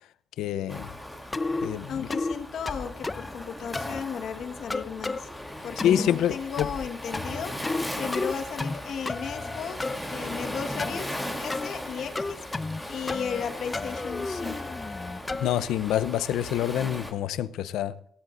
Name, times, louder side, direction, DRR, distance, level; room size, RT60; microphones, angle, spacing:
voice 1, 0.4-0.9 1.6-2.1 5.8-6.7 15.3-18.0, left 11 dB, 85° left, 0.6 m, -27 dB
Waves surf, 0.7-17.1, left 1 dB, ahead, 3.2 m, -38 dB
sound 1, 1.3-1.7 2.1-2.4 2.7-3.3 3.7-4.0 4.7-5.2 5.8-6.1 6.6-6.9 7.1-7.9 8.1-8.8 9.1-10.0 10.8-11.0 11.5-11.7 12.2-12.8 13.1-13.4 13.7-15.5, left 3 dB, 25° left, 0.8 m, -31 dB
voice 2, 1.9-5.3 5.6-7.5 8.0-14.8, left 7 dB, 65° left, 1.5 m, -35 dB
17.0 x 17.0 x 2.6 m
cardioid pair, 90°, 0 cm